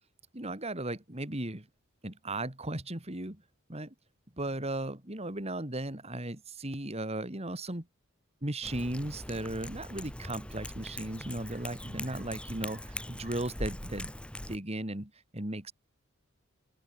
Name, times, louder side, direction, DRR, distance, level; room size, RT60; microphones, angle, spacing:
voice 1, 0.3-1.7 2.0-3.4 3.7-3.9 4.4-7.9 8.4-14.1 14.5-15.7, right 1 dB, 30° right, 2.8 m, -36 dB
Cat, 8.6-14.6, left 1 dB, 5° left, 2.2 m, -41 dB
open air
head